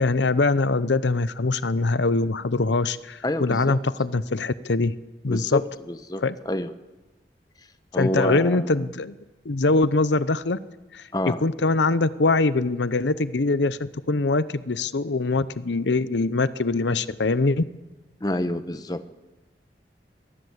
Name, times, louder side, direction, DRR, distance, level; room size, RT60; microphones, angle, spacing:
voice 1, 0.0-4.9 5.2-5.6 6.2-6.4 8.0-9.1 9.4-10.6 10.9-17.6, left 3 dB, 80° left, 16 dB, 0.7 m, -23 dB
voice 2, 3.2-3.8 5.3-6.7 7.9-8.9 11.1-11.4 18.2-19.1, left 1 dB, 20° left, 11 dB, 1.0 m, -28 dB
23.5 x 19.0 x 8.0 m, 1.2 s
head